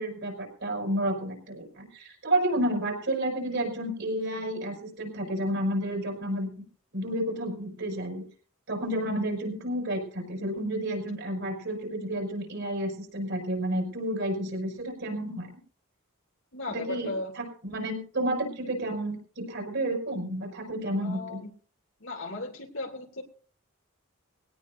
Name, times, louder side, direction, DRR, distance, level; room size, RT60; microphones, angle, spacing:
voice 1, 0.0-6.5 6.9-8.2 8.7-15.5 16.7-21.4, right 1 dB, 60° right, 2 dB, 5.7 m, -31 dB
voice 2, 16.5-17.3 21.0-21.5 22.0-23.2, left 2 dB, 65° left, 2 dB, 2.9 m, -36 dB
20.5 x 17.5 x 2.7 m, 0.43 s
head